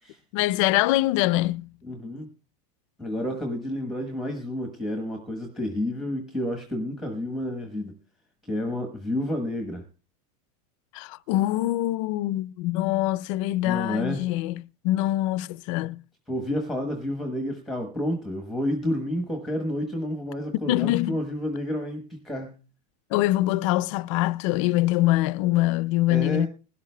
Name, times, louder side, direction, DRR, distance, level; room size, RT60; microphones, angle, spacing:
voice 1, 0.3-1.7 10.9-16.0 20.6-21.2 23.1-26.5, left 16 dB, 50° left, 0.5 m, -24 dB
voice 2, 1.8-2.3 3.0-7.9 8.4-9.9 13.6-14.3 16.3-22.6 26.1-26.5, left 1 dB, ahead, 1.1 m, -30 dB
20.5 x 12.5 x 2.2 m
supercardioid pair, 155°, 21 cm